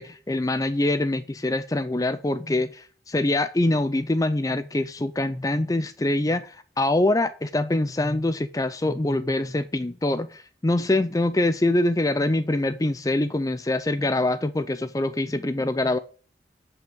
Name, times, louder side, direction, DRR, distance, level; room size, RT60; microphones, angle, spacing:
voice 1, 0.0-16.0, left 2 dB, 20° left, 13 dB, 0.5 m, -24 dB
10.0 x 5.8 x 7.8 m, 0.40 s
head